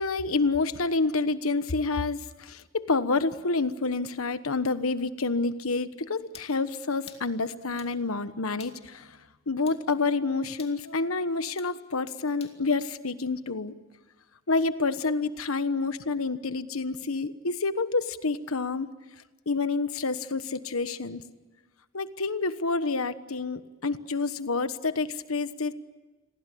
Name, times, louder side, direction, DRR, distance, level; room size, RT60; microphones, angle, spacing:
voice 1, 0.0-9.2 9.5-13.7 14.5-18.9 19.5-21.2 21.9-25.7, left 3 dB, 90° left, 12 dB, 1.2 m, -28 dB
sound 1, 6.3-6.5 7.1-7.3 7.8-8.0 8.6-8.8 9.7-9.8 10.6-10.8 11.6-11.8 12.4-12.6, left 7 dB, 30° left, 2.5 m, -49 dB
29.5 x 22.5 x 8.6 m, 1.2 s
head